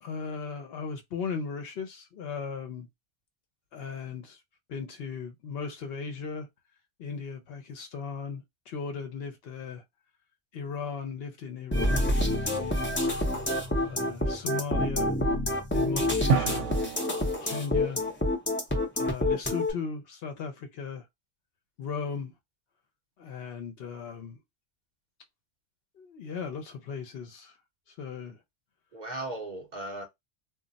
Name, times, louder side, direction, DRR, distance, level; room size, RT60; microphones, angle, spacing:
voice 1, 0.0-2.9 3.7-4.4 4.7-6.5 7.0-9.8 10.5-13.1 13.8-15.1 15.7-16.7 17.4-18.1 18.9-21.1 21.8-22.3 23.2-24.4 26.0-27.6 28.0-28.4, left 5 dB, 65° left, 0.7 m, -37 dB
sound 1, 11.7-19.7, left 1 dB, 15° left, 0.4 m, -27 dB
Drum, 16.3-18.1, right 6 dB, 80° right, 0.9 m, -30 dB
voice 2, 28.9-30.0, right 2 dB, 50° right, 0.6 m, -37 dB
2.2 x 2.0 x 3.8 m
omnidirectional pair, 1.2 m